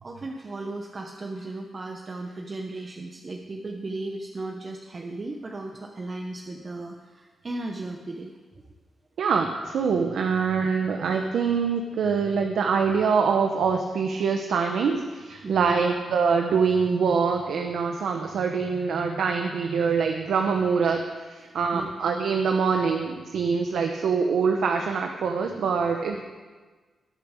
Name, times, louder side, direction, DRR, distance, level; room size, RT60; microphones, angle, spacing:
voice 1, 0.0-8.3 15.4-15.8 21.7-21.9 26.1-26.2, right 2 dB, 35° right, 2 dB, 1.2 m, -35 dB
voice 2, 9.2-26.2, right 5 dB, 80° right, 4 dB, 1.1 m, -24 dB
20.0 x 7.0 x 6.6 m, 1.4 s
cardioid pair, 90°, 0 cm